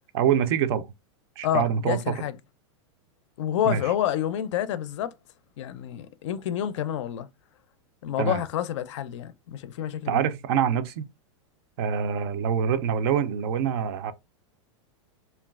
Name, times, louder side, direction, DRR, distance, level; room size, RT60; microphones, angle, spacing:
voice 1, 0.1-0.8 1.4-2.2 3.7-3.8 8.2-8.4 10.1-11.0 11.8-14.1, right 8 dB, 55° right, 0.4 m, -25 dB
voice 2, 1.4-2.4 3.4-5.1 5.6-7.3 8.0-10.2, left 11 dB, 70° left, 0.4 m, -28 dB
3.0 x 2.3 x 2.3 m
supercardioid pair, 145°, 16 cm